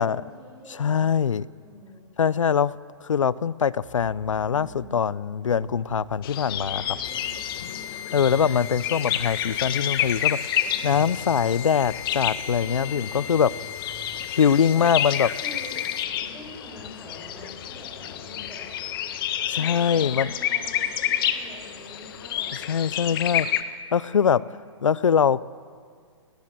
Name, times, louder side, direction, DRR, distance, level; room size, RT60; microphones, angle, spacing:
voice 1, 0.0-1.2 1.6-2.0 4.5-5.0 6.5-8.4 10.6-11.1 12.6-13.2 15.4-15.8 16.1-18.7 19.5-22.5 24.1-24.5, equal, 5° right, -5 dB, 4.9 m, -46 dB
voice 2, 0.7-1.4 2.2-2.7 3.0-6.8 8.1-10.4 10.8-13.5 14.4-15.3 19.6-20.3 22.7-23.5 23.9-24.4 24.8-25.4, left 7 dB, 85° left, 20 dB, 0.7 m, -22 dB
sound 1, 3.8-4.9 5.4-7.8 8.1-14.4, right 5 dB, 40° right, 3.9 m, -48 dB
sound 2, 6.2-23.6, left 11 dB, 45° left, 1.5 m, -30 dB
sound 3, 7.0-16.0, left 10 dB, 65° left, 1.5 m, -38 dB
29.5 x 17.5 x 7.8 m, 2.1 s
hypercardioid pair, 135°, 16 cm